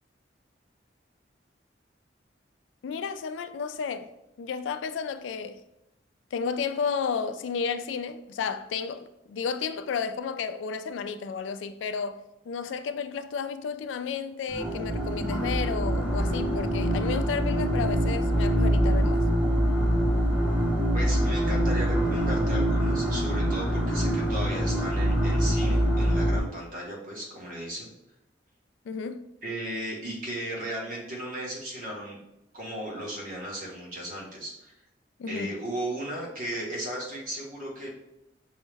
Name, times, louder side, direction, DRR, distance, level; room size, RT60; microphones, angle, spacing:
voice 1, 2.8-4.1 4.4-5.6 6.3-19.2 28.9-29.3 35.2-35.6, left 6 dB, 85° left, 0.3 m, -32 dB
sound 1, 14.5-26.4, equal, 5° right, 0.7 m, -24 dB
voice 2, 20.9-27.9 29.4-32.2 32.5-34.8 35.3-37.9, right 1 dB, 45° right, 1.1 m, -36 dB
5.4 x 2.1 x 3.3 m
head